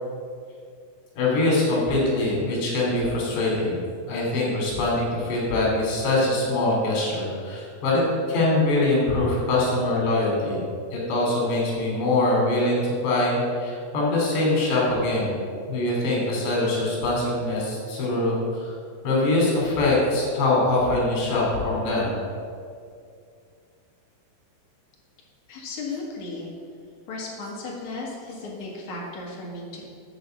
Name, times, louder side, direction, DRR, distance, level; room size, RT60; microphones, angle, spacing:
voice 1, 1.2-3.8 4.1-8.0 8.3-10.6 10.9-15.4 15.7-18.7 19.0-22.1, left 2 dB, 80° left, -4 dB, 5.0 m, -23 dB
voice 2, 25.5-26.5 27.1-29.8, left 3 dB, 55° left, -3 dB, 2.4 m, -35 dB
10.5 x 4.6 x 7.6 m, 2.3 s
omnidirectional pair, 4.9 m